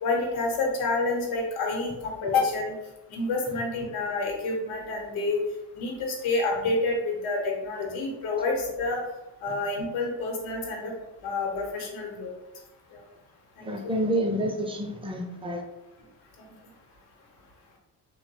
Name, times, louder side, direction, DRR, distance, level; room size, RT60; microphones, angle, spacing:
voice 1, 0.0-2.7 3.1-5.4 5.7-9.0 9.4-10.9 11.2-12.4 12.9-13.0 13.6-14.0 16.4-16.5, left 3 dB, 70° left, 0 dB, 0.9 m, -28 dB
voice 2, 13.6-15.6, equal, 10° right, 2 dB, 0.4 m, -28 dB
2.8 x 2.1 x 2.7 m, 0.97 s
supercardioid pair, 55°, 49 cm